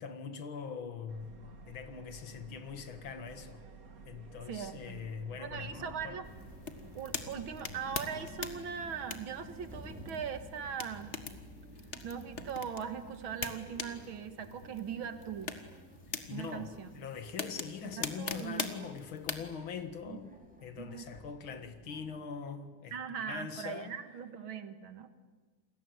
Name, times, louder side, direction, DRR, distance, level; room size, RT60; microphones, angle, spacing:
voice 1, 0.0-1.4 1.7-3.6 4.1-6.2 16.3-20.3 20.6-23.0 23.3-24.0, left 6 dB, 75° left, 2.5 m, -42 dB
Subway metro underground, 1.1-8.6, right 4 dB, 45° right, 2.1 m, -53 dB
voice 2, 4.5-5.1 5.4-6.3 6.9-11.1 12.0-15.6 16.3-16.9 17.8-18.9 20.1-20.2 20.8-21.1 22.9-25.1, right 7 dB, 75° right, 2.5 m, -40 dB
sound 1, 5.5-22.2, equal, 5° right, 4.2 m, -53 dB
sound 2, 6.3-19.5, left 5 dB, 35° left, 1.8 m, -43 dB
29.0 x 21.0 x 9.4 m
omnidirectional pair, 2.2 m